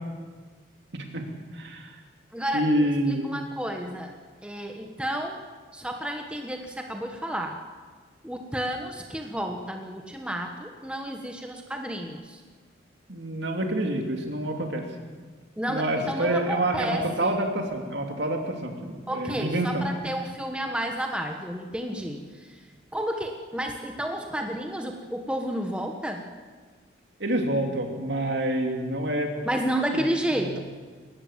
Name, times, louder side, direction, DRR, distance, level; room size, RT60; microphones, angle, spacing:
voice 1, 0.9-1.2 1.5-1.9 2.5-3.3 13.1-14.8 15.7-19.8 27.2-29.3 29.9-30.0 30.3-30.6, right 1 dB, 65° right, 3 dB, 2.9 m, -27 dB
voice 2, 2.3-4.1 4.4-5.4 5.7-7.6 8.2-12.4 15.6-17.3 19.1-22.2 22.9-26.2 29.4-30.6, right 1 dB, 5° right, 3 dB, 1.3 m, -31 dB
21.0 x 18.5 x 7.5 m, 1.5 s
head